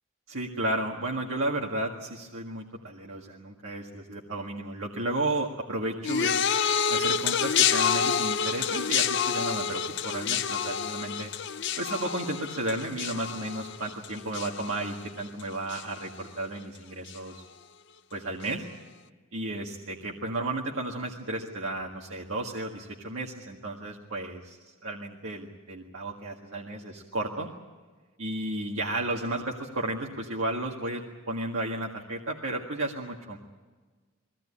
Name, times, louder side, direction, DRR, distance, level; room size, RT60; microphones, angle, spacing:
voice 1, 0.3-6.4 6.9-11.3 11.8-17.4 18.1-18.7 19.3-24.6 24.8-27.5 28.2-33.4, right 2 dB, 75° right, -1 dB, 1.9 m, -33 dB
sound 1, 6.0-15.4 15.7-16.2 17.1-17.2, left 7 dB, 60° left, 0.7 m, -28 dB
22.0 x 17.0 x 9.8 m, 1.4 s
head